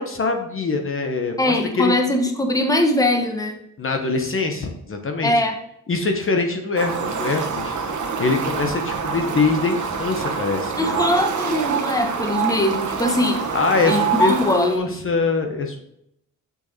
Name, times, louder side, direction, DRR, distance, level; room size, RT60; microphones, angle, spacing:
voice 1, 0.0-2.0 3.8-5.3 5.9-7.8 8.2-11.0 13.5-15.9, left 4 dB, 40° left, 4 dB, 1.0 m, -23 dB
voice 2, 1.4-3.6 5.2-5.6 10.7-13.4 13.8-15.0, left 1 dB, 10° left, 4 dB, 1.1 m, -21 dB
Fowl, 6.8-14.8, right 6 dB, 65° right, 1.2 m, -26 dB
6.5 x 5.7 x 4.1 m, 0.76 s
cardioid pair, 100°, 32 cm